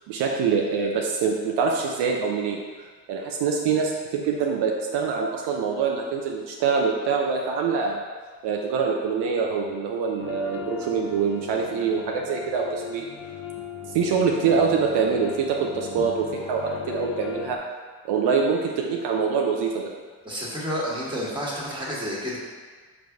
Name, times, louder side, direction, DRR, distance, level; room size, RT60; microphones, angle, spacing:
voice 1, 0.1-8.1 8.4-13.1 13.9-16.1 16.5-17.6 18.0-19.9, right 5 dB, 75° right, 0 dB, 0.5 m, -25 dB
sound 1, 10.2-17.6, left 7 dB, 50° left, 0.6 m, -38 dB
voice 2, 20.2-22.4, equal, 10° right, -6 dB, 1.4 m, -30 dB
4.8 x 3.3 x 2.3 m, 1.5 s
supercardioid pair, 45°, 40 cm